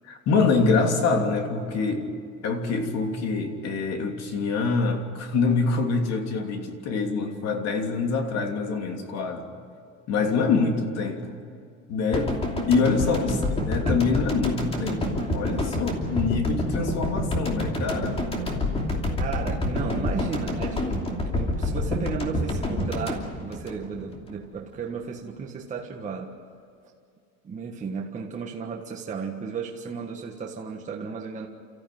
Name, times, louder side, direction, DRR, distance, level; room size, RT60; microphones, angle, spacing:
voice 1, 0.0-2.1 2.4-9.5 10.1-11.4 11.9-12.3 12.7-18.2, left 4 dB, 55° left, 4 dB, 3.1 m, -25 dB
sound 1, 12.1-24.3 24.6-24.8, left 1 dB, 20° left, 2.9 m, -28 dB
voice 2, 12.9-13.5 13.8-14.1 19.2-26.3 27.4-31.5, right 5 dB, 25° right, -1 dB, 1.6 m, -34 dB
30.0 x 14.0 x 9.3 m, 2.4 s
cardioid pair, 155°, 32 cm